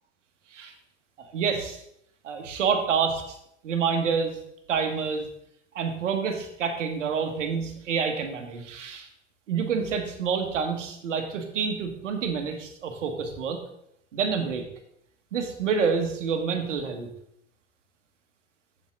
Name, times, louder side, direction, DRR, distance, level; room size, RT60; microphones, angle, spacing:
voice 1, 1.2-1.8 2.2-3.4 3.6-4.4 4.7-5.3 5.7-9.1 9.5-13.6 14.1-14.6 15.3-17.1, right 6 dB, 80° right, 6 dB, 1.4 m, -28 dB
7.6 x 7.2 x 3.7 m, 0.74 s
hypercardioid pair, 80°, 36 cm